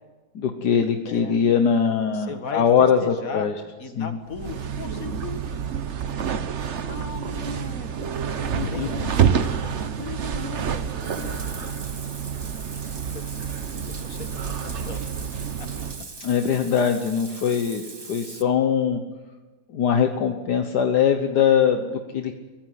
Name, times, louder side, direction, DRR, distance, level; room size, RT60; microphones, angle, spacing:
voice 1, 0.3-3.5 4.0-4.2 8.6-8.9 16.2-19.0 19.7-22.3, left 7 dB, 70° left, 6 dB, 1.7 m, -22 dB
voice 2, 1.1-1.4 2.1-3.5 3.8-5.4 6.9-8.1 8.4-9.7 10.0-11.9 13.1-13.2 13.9-14.5 14.8-15.1 15.6-15.7, left 5 dB, 55° left, 7 dB, 2.2 m, -37 dB
sound 1, 4.3-16.0, right 7 dB, 50° right, 1.1 m, -28 dB
Bathtub (filling or washing), 10.4-18.4, right 3 dB, 25° right, 0.6 m, -41 dB
23.0 x 15.5 x 9.5 m, 1.3 s
omnidirectional pair, 1.8 m